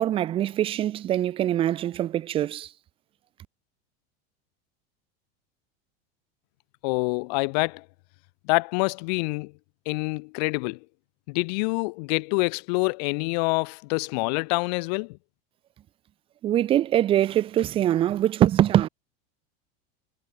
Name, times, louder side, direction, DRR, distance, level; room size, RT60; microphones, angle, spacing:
voice 1, 0.0-2.7 16.4-18.9, right 12 dB, 20° right, 0.7 m, -23 dB
voice 2, 6.8-7.8 8.4-9.5 9.9-10.8 11.3-15.2, left 30 dB, 45° left, 0.8 m, -26 dB
supercardioid pair, 175°, 30 cm